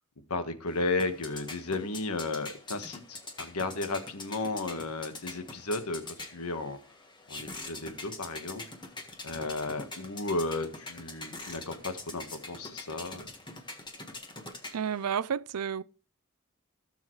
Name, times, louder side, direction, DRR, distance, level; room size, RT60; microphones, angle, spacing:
voice 1, 0.3-6.8 7.3-8.6 9.2-13.3, left 3 dB, 80° left, 1.5 m, -34 dB
sound 1, 0.7-15.1, left 2 dB, 20° left, 1.6 m, -44 dB
voice 2, 14.7-15.8, right 7 dB, 85° right, 0.5 m, -31 dB
17.0 x 7.1 x 3.2 m
head